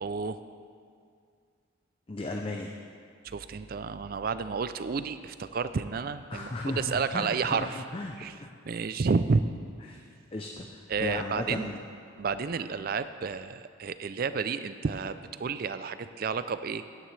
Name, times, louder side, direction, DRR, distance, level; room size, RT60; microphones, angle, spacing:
voice 1, 0.0-0.4 3.2-7.8 8.2-8.4 8.6-9.4 10.9-11.7 12.2-16.8, right 5 dB, 45° right, 12 dB, 0.4 m, -31 dB
voice 2, 2.1-2.7 6.3-8.5 9.9-10.0 10.3-11.8, left 2 dB, 25° left, 2 dB, 0.5 m, -36 dB
16.0 x 9.8 x 3.3 m, 2.2 s
head